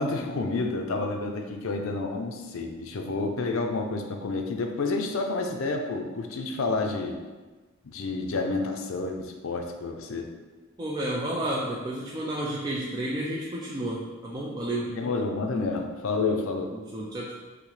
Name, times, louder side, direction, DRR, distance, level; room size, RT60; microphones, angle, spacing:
voice 1, 0.0-7.2 7.8-10.3 14.9-16.7, left 3 dB, 70° left, 4 dB, 0.5 m, -29 dB
voice 2, 10.8-14.9 16.7-17.3, right 1 dB, 20° right, -5 dB, 0.3 m, -31 dB
5.8 x 2.1 x 3.2 m, 1.3 s
head